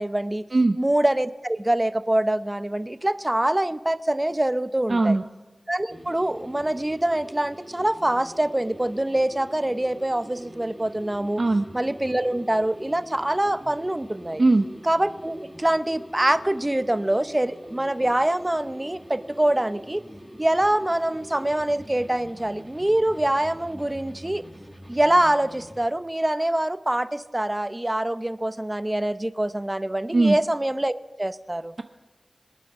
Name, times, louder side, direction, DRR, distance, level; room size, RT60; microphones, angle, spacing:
voice 1, 0.0-0.5 0.8-5.2 5.7-11.4 11.7-14.4 14.9-20.0 20.4-24.4 24.9-30.9 31.2-31.7, right 1 dB, 20° right, 13 dB, 0.7 m, -24 dB
voice 2, 4.9-5.2 11.4-11.6 14.4-14.7 30.1-30.4, right 2 dB, 55° right, 7 dB, 0.7 m, -19 dB
sound 1, 5.9-25.9, equal, 5° right, 1.8 m, -44 dB
26.0 x 9.2 x 6.0 m, 1.2 s
wide cardioid pair, 65°, 0 cm